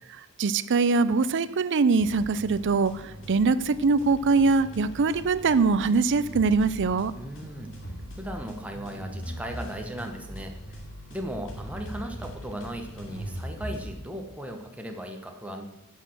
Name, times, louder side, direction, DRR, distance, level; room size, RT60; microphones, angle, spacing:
voice 1, 0.4-3.0 3.3-7.1, right 4 dB, 55° right, 15 dB, 0.5 m, -22 dB
sound 1, 2.0-13.9, equal, 60° left, 2.8 m, -40 dB
voice 2, 7.2-7.7 8.2-10.8 11.1-15.7, equal, 5° right, 3 dB, 1.0 m, -37 dB
10.0 x 6.5 x 7.7 m, 0.96 s
head